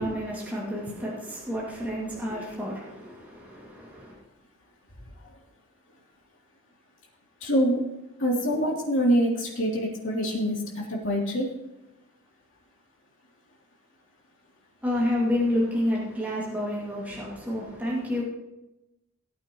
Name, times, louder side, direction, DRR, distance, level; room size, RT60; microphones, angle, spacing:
voice 1, 0.0-4.2 14.8-18.2, left 1 dB, 10° right, 2.4 m, -29 dB
voice 2, 7.4-7.8 8.2-11.5, equal, 60° left, 3.2 m, -25 dB
18.5 x 8.8 x 3.1 m
head